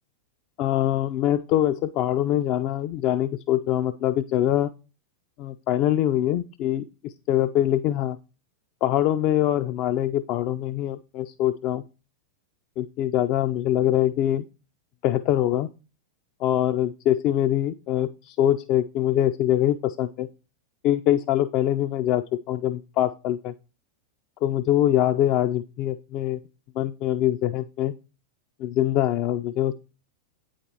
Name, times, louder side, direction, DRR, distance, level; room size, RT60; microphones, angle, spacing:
voice 1, 0.6-4.7 5.4-8.2 8.8-11.8 12.8-14.4 15.0-15.7 16.4-20.3 20.8-23.5 24.4-26.4 26.8-27.9 28.6-29.7, left 12 dB, 40° left, 10 dB, 0.4 m, -23 dB
8.4 x 4.3 x 4.5 m, 0.32 s
figure-of-eight pair, 90°, 0 cm